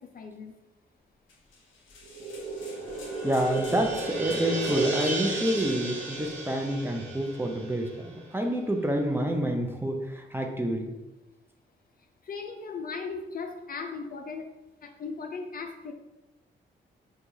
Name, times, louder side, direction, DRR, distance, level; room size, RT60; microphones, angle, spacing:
voice 1, 0.1-0.5 12.3-14.5 14.8-15.9, left 4 dB, 45° left, 4 dB, 0.5 m, -37 dB
sound 1, 1.3-6.7, left 3 dB, 75° left, 0.8 m, -50 dB
sound 2, 2.0-8.6, right 2 dB, 75° right, 0.8 m, -34 dB
voice 2, 3.2-10.9, right 1 dB, 10° right, 3 dB, 0.6 m, -28 dB
4.5 x 2.3 x 2.7 m, 1.0 s
supercardioid pair, 55°, 20 cm